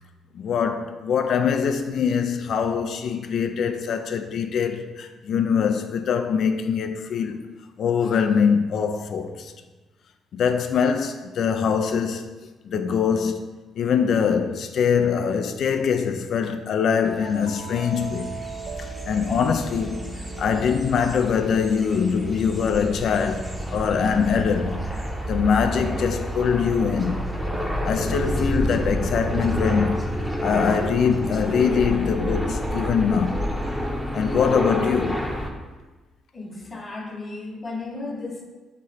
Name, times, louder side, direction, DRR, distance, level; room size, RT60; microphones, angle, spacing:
voice 1, 0.3-7.4 7.8-9.5 10.3-12.3 12.7-18.3 19.1-20.0 20.4-24.8 25.3-27.2 27.8-30.0 30.4-33.5 34.1-35.2, left 6 dB, 65° left, 0.4 m, -23 dB
sound 1, 17.2-35.5, equal, ahead, 0.7 m, -29 dB
sound 2, 17.2-23.7, right 3 dB, 70° right, 1.0 m, -41 dB
voice 2, 36.3-38.4, left 3 dB, 30° left, 1.0 m, -34 dB
3.8 x 3.1 x 4.1 m
supercardioid pair, 65°, 0 cm